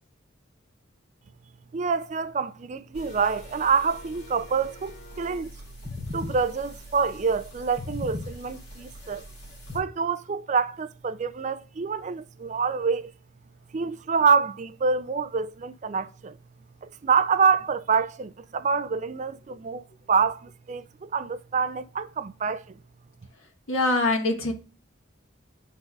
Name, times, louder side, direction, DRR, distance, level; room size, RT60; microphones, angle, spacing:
voice 1, 1.7-5.5 6.1-9.2 9.7-13.1 13.7-16.4 16.8-22.8, right 5 dB, 35° right, 0.3 m, -26 dB
sound 1, 2.9-9.8, left 2 dB, 50° left, 3.3 m, -40 dB
voice 2, 23.4-24.5, left 2 dB, 90° left, 1.5 m, -25 dB
9.8 x 4.1 x 2.4 m
head